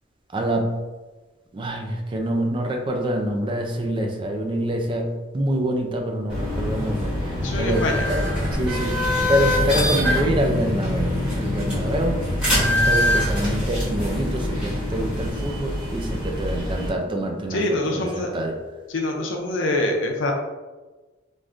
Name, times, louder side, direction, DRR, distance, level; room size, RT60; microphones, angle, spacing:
voice 1, 0.3-0.8 1.5-8.2 8.5-12.2 12.5-18.6, right 1 dB, 25° right, 2 dB, 0.3 m, -26 dB
sound 1, 6.3-16.9, left 1 dB, 5° right, 1.1 m, -24 dB
voice 2, 7.4-8.1 17.5-18.3 18.9-20.3, left 2 dB, 80° left, 1 dB, 0.6 m, -25 dB
3.4 x 2.5 x 2.4 m, 1.2 s
head